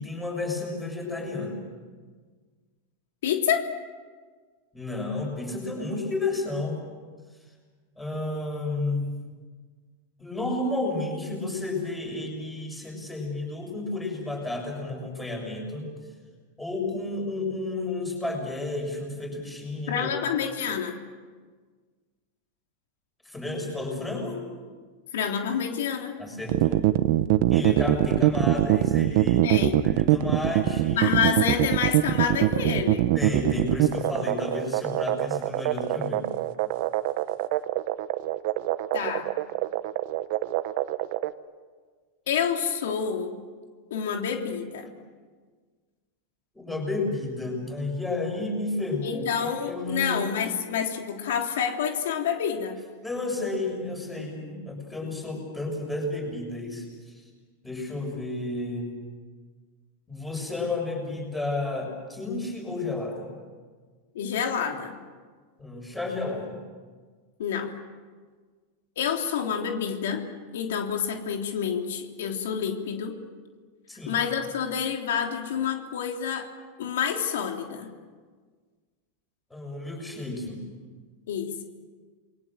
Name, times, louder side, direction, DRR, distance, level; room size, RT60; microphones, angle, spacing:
voice 1, 0.0-1.6 4.7-6.8 8.0-9.2 10.2-15.9 16.6-20.1 23.2-24.4 26.2-26.8 27.5-31.2 33.2-36.3 46.5-50.2 53.0-57.2 57.6-58.9 60.1-63.3 65.6-66.6 73.9-74.2 79.5-80.6, left 2 dB, 5° left, 1 dB, 6.9 m, -32 dB
voice 2, 3.2-3.7 19.9-21.0 25.1-26.2 29.4-29.8 31.0-33.1 38.9-39.3 42.3-43.3 43.9-44.9 49.0-52.8 64.2-64.9 67.4-67.7 69.0-70.3 70.5-73.1 74.1-76.5 76.8-77.9 81.3-81.6, left 7 dB, 85° left, 2 dB, 3.4 m, -28 dB
sound 1, 26.5-41.3, right 15 dB, 55° right, 1.1 m, -23 dB
29.0 x 22.5 x 7.6 m, 1.5 s
supercardioid pair, 155°, 0 cm